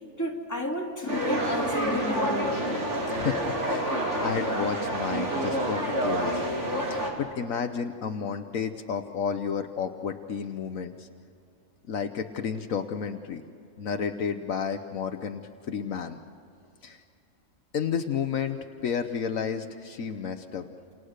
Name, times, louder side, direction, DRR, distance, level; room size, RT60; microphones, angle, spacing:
voice 1, 0.2-2.6, left 1 dB, 10° left, -1 dB, 2.9 m, -31 dB
sound 1, 1.1-7.1, right 1 dB, 55° right, 3.6 m, -28 dB
voice 2, 3.1-3.9 4.2-6.5 6.9-11.1 11.9-13.4 13.8-15.4 15.7-16.2 16.8-17.0 17.7-20.7, left 6 dB, 70° left, 7 dB, 1.3 m, -31 dB
29.0 x 28.5 x 6.6 m, 2.6 s
omnidirectional pair, 1.4 m